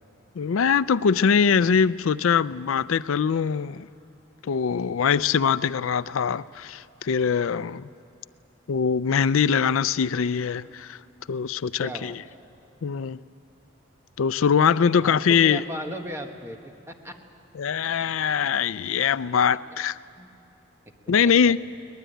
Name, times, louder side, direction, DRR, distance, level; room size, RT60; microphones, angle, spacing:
voice 1, 0.4-3.9 4.4-7.9 8.7-11.0 11.3-12.1 12.8-13.2 14.2-15.6 17.6-20.0 21.1-21.6, left 6 dB, 85° left, 0.4 m, -22 dB
voice 2, 11.8-12.2 15.0-17.1 19.5-19.8 20.2-20.3 21.0-21.5, equal, 15° right, 1.5 m, -37 dB
22.5 x 20.0 x 9.2 m
head